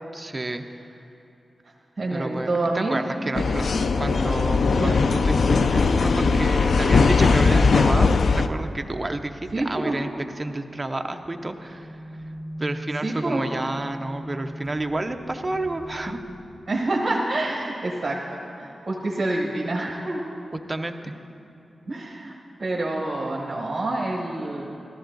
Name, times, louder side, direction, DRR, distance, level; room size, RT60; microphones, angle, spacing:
voice 1, 0.1-0.6 2.1-3.6 4.0-10.1 10.4-12.0 12.6-16.2 20.7-21.1, right 2 dB, 20° right, 6 dB, 0.5 m, -30 dB
voice 2, 2.0-3.0 3.3-3.7 4.7-5.0 9.5-10.0 13.0-13.4 16.7-20.2 21.9-24.6, right 2 dB, 35° right, -3 dB, 1.3 m, -27 dB
sound 1, 3.3-8.5, left 4 dB, 65° left, 0.3 m, -19 dB
sound 2, 11.3-16.4, right 1 dB, 90° left, 2.4 m, -39 dB
14.0 x 13.5 x 3.9 m, 2.8 s
wide cardioid pair, 145°, 0 cm